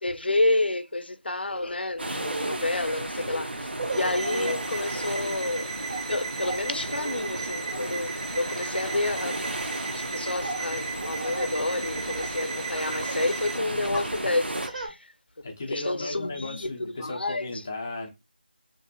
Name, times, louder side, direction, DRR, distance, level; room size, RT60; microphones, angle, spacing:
voice 1, 0.0-5.7 6.1-9.4 9.9-15.0 15.7-16.7 17.0-17.5, left 2 dB, 85° left, 0.5 m, -29 dB
Laughter, 1.5-1.7 2.1-12.4 12.7-13.4 13.8-14.9, right 2 dB, 55° right, 0.9 m, -37 dB
sound 1, 2.0-14.7, right 1 dB, 85° right, 0.6 m, -34 dB
sound 2, 3.9-13.6, right 5 dB, 40° right, 0.5 m, -37 dB
voice 2, 15.4-18.1, left 2 dB, 15° left, 0.4 m, -35 dB
2.6 x 2.5 x 2.2 m
figure-of-eight pair, 170°, 5 cm